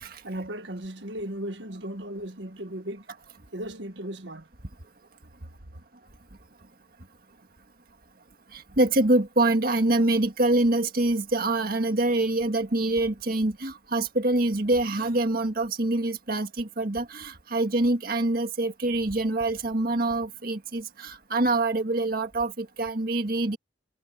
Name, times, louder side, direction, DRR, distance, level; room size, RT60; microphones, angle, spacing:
voice 1, 0.2-3.1 3.5-4.5, right 1 dB, 80° right, 1.7 m, -36 dB
voice 2, 8.5-23.6, right 2 dB, 55° right, 1.8 m, -25 dB
head